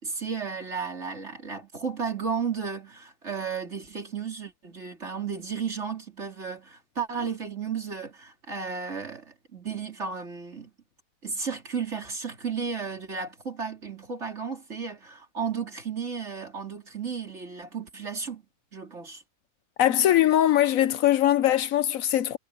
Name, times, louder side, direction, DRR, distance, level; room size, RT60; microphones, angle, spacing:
voice 1, 0.0-10.7 11.2-18.4 18.7-19.2, right 6 dB, 50° right, 4.1 m, -33 dB
voice 2, 19.8-22.4, left 12 dB, 75° left, 1.1 m, -21 dB
omnidirectional pair, 1.5 m